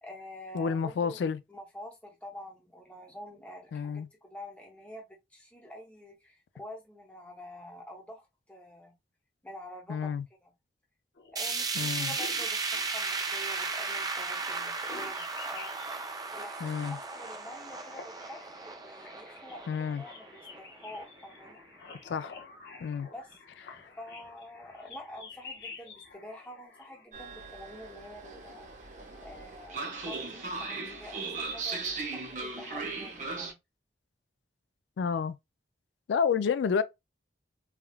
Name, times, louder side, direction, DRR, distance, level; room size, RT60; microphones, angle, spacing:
voice 1, 0.0-8.9 9.4-10.1 10.4-10.5 11.3-16.0 16.3-21.6 23.0-23.7 24.0-28.7 29.2-33.6, left 1 dB, 10° left, 0.8 m, -47 dB
voice 2, 0.5-1.4 3.7-4.1 9.9-10.2 11.8-12.1 16.6-17.0 19.7-20.0 22.0-22.3 22.8-23.1 23.7-23.8 35.0-35.4 36.1-36.8, left 6 dB, 85° left, 0.3 m, -29 dB
sound 1, 11.2-27.0, left 4 dB, 70° left, 0.8 m, -50 dB
sound 2, 11.4-21.5 21.9-22.0 22.4-22.5 23.3-23.4, right 4 dB, 20° right, 0.3 m, -36 dB
Train, 27.1-33.5, right 3 dB, 45° right, 0.7 m, -38 dB
3.5 x 2.3 x 2.2 m
head